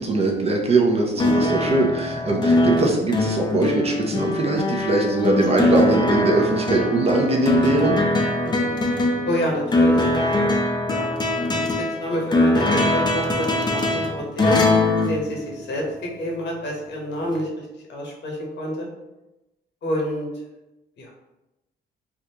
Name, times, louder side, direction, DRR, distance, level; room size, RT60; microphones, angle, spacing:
voice 1, 0.0-8.0, right 2 dB, 30° right, 1 dB, 0.6 m, -21 dB
sound 1, 1.2-16.1 17.3-17.4, left 1 dB, 20° left, 0.6 m, -22 dB
voice 2, 9.2-10.5 10.9-11.1 11.5-11.7 12.0-14.5 15.1-15.8 16.2-17.5 17.9-18.9 19.8-20.3 21.0-21.1, equal, 60° left, -1 dB, 1.0 m, -28 dB
3.6 x 2.4 x 2.8 m, 0.97 s
cardioid pair, 90°, 20 cm